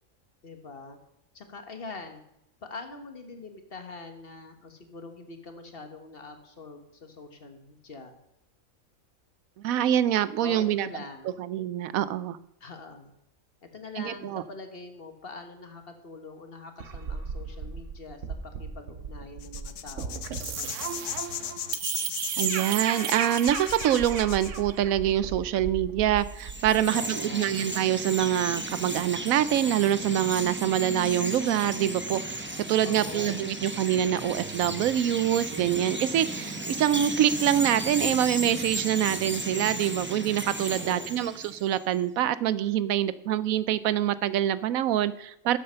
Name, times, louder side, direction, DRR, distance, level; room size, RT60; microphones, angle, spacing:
voice 1, 0.4-1.0 1.3-2.2 2.6-8.1 10.4-11.4 12.6-13.1 13.7-21.1 26.9-27.6 32.8-33.5 40.8-41.1, left 3 dB, 45° left, 6 dB, 1.5 m, -44 dB
voice 2, 9.6-10.9 11.5-12.4 14.0-14.4 22.4-45.6, right 11 dB, 90° right, 16 dB, 1.0 m, -25 dB
sound 1, 16.8-26.8, right 7 dB, 65° right, 1.2 m, -34 dB
sound 2, 19.4-24.6, left 10 dB, 70° left, 1.0 m, -37 dB
Chirp tweet, 26.2-41.8, right 1 dB, 10° right, 0.8 m, -35 dB
12.5 x 7.6 x 5.6 m, 0.81 s
omnidirectional pair, 1.4 m